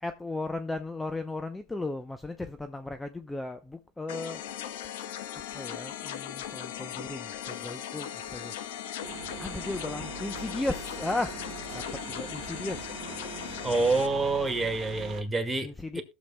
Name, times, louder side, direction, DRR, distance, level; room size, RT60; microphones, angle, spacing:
voice 1, 0.0-4.4 5.3-8.5 9.4-11.4 11.7-12.9 15.6-16.0, left 2 dB, 10° left, 0.7 m, -35 dB
sound 1, 4.1-14.1, left 10 dB, 90° left, 1.0 m, -38 dB
sound 2, 9.0-15.2, right 6 dB, 55° right, 1.7 m, -43 dB
voice 2, 13.6-15.7 16.0-16.1, right 3 dB, 15° right, 1.7 m, -27 dB
21.0 x 7.1 x 2.2 m
supercardioid pair, 110°, 0 cm